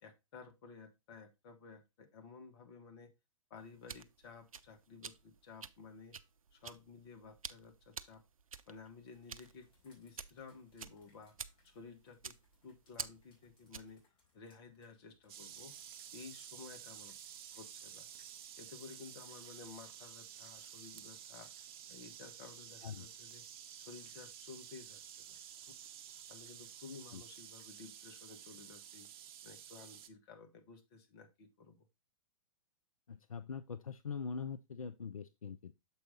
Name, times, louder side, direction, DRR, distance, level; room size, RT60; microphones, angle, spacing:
voice 1, 0.0-3.1 3.5-6.2 6.5-8.2 8.7-11.3 11.6-12.3 12.6-14.0 14.3-15.7 16.1-17.1 17.5-18.1 18.6-21.5 21.9-23.4 23.8-25.4 26.3-29.1 29.4-31.9, left 4 dB, 45° left, 7 dB, 1.5 m, -54 dB
sound 1, 3.6-14.0, right 6 dB, 80° right, 0.5 m, -50 dB
sound 2, 9.1-27.7, left 3 dB, 30° left, 4.0 m, -75 dB
sound 3, 15.3-30.1, right 9 dB, 45° right, 0.8 m, -52 dB
voice 2, 33.1-35.8, left 6 dB, 85° left, 13 dB, 0.4 m, -43 dB
7.0 x 4.8 x 3.8 m, 0.23 s
figure-of-eight pair, 110°, 17 cm